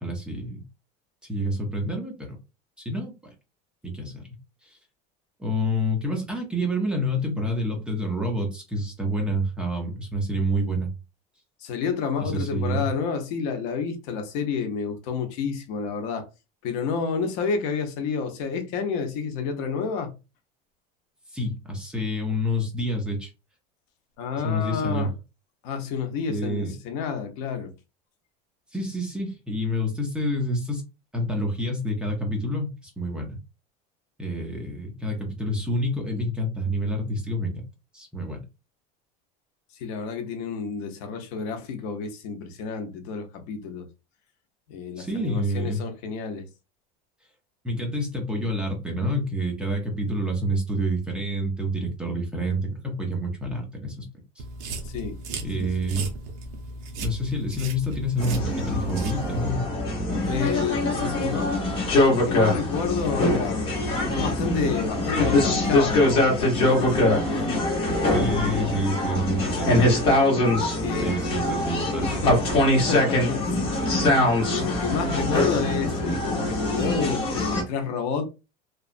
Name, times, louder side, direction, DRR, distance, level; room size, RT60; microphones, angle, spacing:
voice 1, 0.0-0.6 1.3-2.4 2.8-3.1 3.8-4.3 4.6-4.8 5.4-10.9 12.2-12.9 21.3-23.3 24.4-25.1 26.3-26.7 28.7-30.8 31.1-33.4 34.2-37.6 37.9-38.4 45.0-45.8 47.6-54.1 54.4-54.5 55.4-56.1 57.0-59.7 68.1-69.9 71.0-72.3, equal, 5° right, 0.5 m, -28 dB
voice 2, 11.6-16.3 16.6-20.2 24.2-25.1 25.6-27.7 39.7-43.9 44.7-46.5 54.8-55.2 55.6-55.9 60.2-61.6 62.1-63.7 64.1-68.3 70.8-71.2 72.2-72.4 72.9-78.2, left 5 dB, 60° left, 0.7 m, -30 dB
sound 1, 54.4-59.5, right 2 dB, 55° right, 0.7 m, -36 dB
zoo jovicactribute, 58.2-77.6, left 1 dB, 30° left, 1.0 m, -23 dB
2.9 x 2.3 x 2.4 m
cardioid pair, 170°, 19 cm